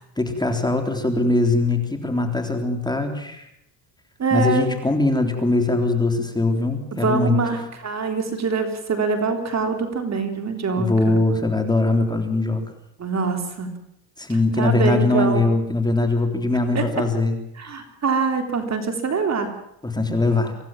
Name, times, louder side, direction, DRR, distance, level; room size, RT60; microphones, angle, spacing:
voice 1, 0.2-3.4 4.3-7.4 10.8-12.6 14.2-17.4 19.8-20.5, left 2 dB, 10° left, 5 dB, 3.6 m, -21 dB
voice 2, 4.2-4.7 6.9-11.2 13.0-13.7 14.6-15.5 16.7-16.9 17.6-19.6, right 4 dB, 35° right, 6 dB, 3.6 m, -24 dB
25.0 x 16.5 x 7.4 m, 0.75 s
cardioid pair, 105°, 46 cm